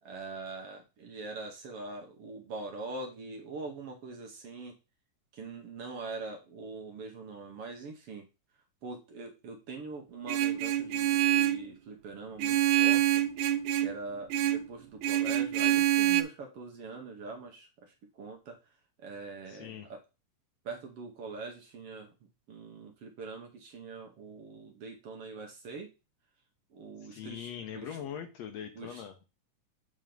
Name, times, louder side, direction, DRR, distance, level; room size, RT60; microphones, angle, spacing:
voice 1, 0.0-4.7 5.3-8.3 8.8-13.2 13.8-20.0 20.6-22.1 22.5-25.9 26.7-27.5 27.7-28.0 28.7-29.0, right 3 dB, 60° right, 2 dB, 1.7 m, -43 dB
Vehicle horn car horn honking, 10.3-11.7 12.4-14.0 14.3-14.7 15.0-16.2, right 13 dB, 85° right, 2.1 m, -26 dB
voice 2, 19.5-19.9 27.0-29.2, left 9 dB, 75° left, 7 dB, 1.8 m, -42 dB
7.6 x 3.8 x 5.1 m, 0.29 s
omnidirectional pair, 3.5 m